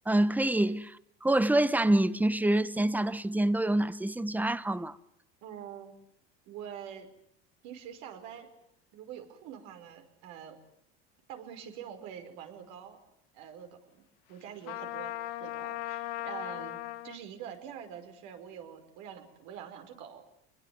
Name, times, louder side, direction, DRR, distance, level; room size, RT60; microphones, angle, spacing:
voice 1, 0.1-5.0, right 1 dB, 5° right, 1.0 m, -26 dB
voice 2, 5.4-5.9 6.5-7.1 7.6-8.5 8.9-10.6 11.3-13.0 13.3-14.0 14.3-15.1 15.4-16.8 17.0-20.2, right 9 dB, 65° right, 5.2 m, -45 dB
Trumpet, 14.6-17.2, left 16 dB, 75° left, 1.6 m, -37 dB
24.5 x 21.5 x 9.5 m
supercardioid pair, 100°, 32 cm